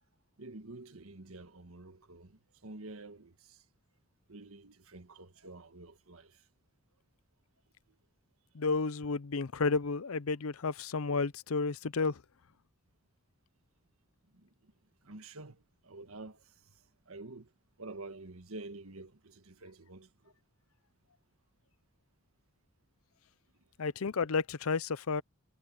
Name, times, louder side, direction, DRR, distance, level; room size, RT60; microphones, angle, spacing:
voice 1, 0.4-3.6 4.3-6.5 14.2-14.7 15.0-17.5 17.8-20.3, right 2 dB, 80° right, 1.6 m, -49 dB
voice 2, 8.5-12.2 23.8-25.2, left 4 dB, 80° left, 0.6 m, -32 dB
head